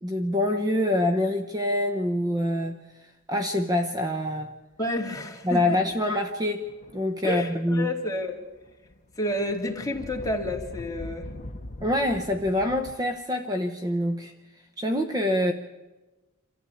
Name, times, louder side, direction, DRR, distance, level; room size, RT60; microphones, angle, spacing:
voice 1, 0.0-2.8 3.3-4.5 5.4-7.9 11.8-14.3 14.8-15.5, left 1 dB, 20° right, 6 dB, 0.9 m, -25 dB
sound 1, 4.7-5.0 5.6-6.1 6.6-7.8 8.2-12.9, left 1 dB, 35° left, 1.0 m, -43 dB
voice 2, 4.8-5.8 7.2-8.4 9.2-11.3, left 1 dB, 15° left, 0 dB, 2.4 m, -30 dB
27.0 x 13.5 x 8.5 m, 1.1 s
head